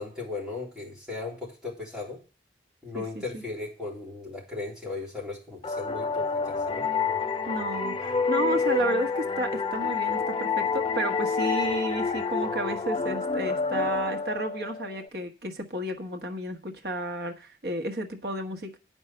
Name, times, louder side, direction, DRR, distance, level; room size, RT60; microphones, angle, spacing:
voice 1, 0.0-2.2 2.8-6.9, left 3 dB, 5° right, -6 dB, 3.8 m, -37 dB
voice 2, 2.9-3.4 7.5-18.8, right 1 dB, 60° right, 4 dB, 1.2 m, -32 dB
sound 1, 5.6-15.0, left 5 dB, 30° left, 0.5 m, -28 dB
8.9 x 5.5 x 7.8 m, 0.36 s
head